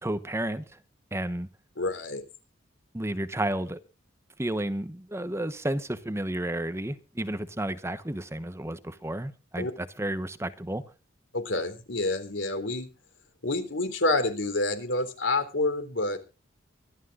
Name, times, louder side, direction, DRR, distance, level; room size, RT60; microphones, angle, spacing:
voice 1, 0.0-0.6 1.1-1.5 2.9-3.8 4.4-10.8, right 1 dB, 15° right, 1.0 m, -32 dB
voice 2, 1.8-2.2 9.6-9.7 11.3-12.9 13.4-16.2, left 2 dB, 85° left, 3.5 m, -28 dB
24.5 x 12.0 x 2.5 m
head